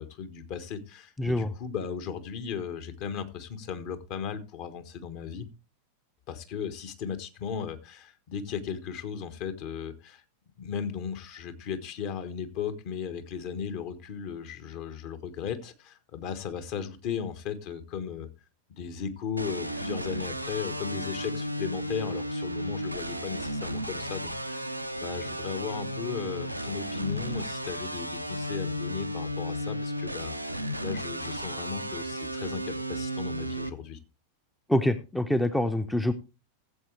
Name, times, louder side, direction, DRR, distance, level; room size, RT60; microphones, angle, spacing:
voice 1, 0.0-5.5 6.3-10.2 10.6-18.3 18.8-34.0, left 7 dB, 45° left, 1.4 m, -36 dB
voice 2, 1.2-1.5 34.7-36.1, left 1 dB, 5° left, 0.7 m, -25 dB
sound 1, 19.4-33.7, equal, 90° right, 0.7 m, -34 dB
16.0 x 7.8 x 3.2 m
figure-of-eight pair, 90°, 0 cm